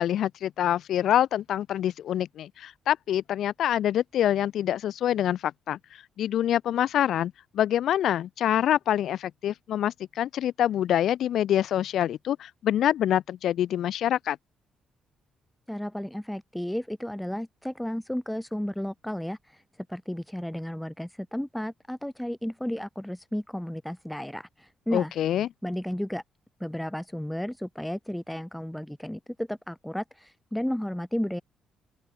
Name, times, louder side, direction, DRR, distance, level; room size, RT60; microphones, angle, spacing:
voice 1, 0.0-5.8 6.2-14.4 24.9-25.5, left 11 dB, 70° left, 1.3 m, -26 dB
voice 2, 15.7-19.6 19.9-25.2 25.6-26.2 26.6-31.4, equal, 5° left, 2.7 m, -33 dB
open air
cardioid pair, 90°, 0 cm